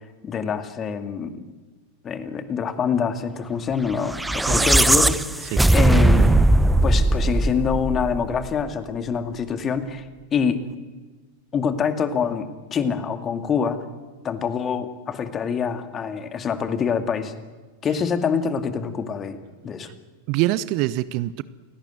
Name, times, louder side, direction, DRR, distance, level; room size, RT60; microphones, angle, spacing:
voice 1, 0.0-1.5 2.0-6.3 6.8-10.1 10.3-10.6 11.5-13.8 14.2-17.3 17.8-19.9, left 6 dB, 25° left, 9 dB, 2.3 m, -25 dB
sound 1, 4.0-8.4, right 2 dB, 5° right, 0.9 m, -18 dB
voice 2, 20.3-21.4, right 16 dB, 45° right, 17 dB, 0.8 m, -24 dB
28.5 x 18.0 x 9.3 m, 1.3 s
figure-of-eight pair, 90°, 0 cm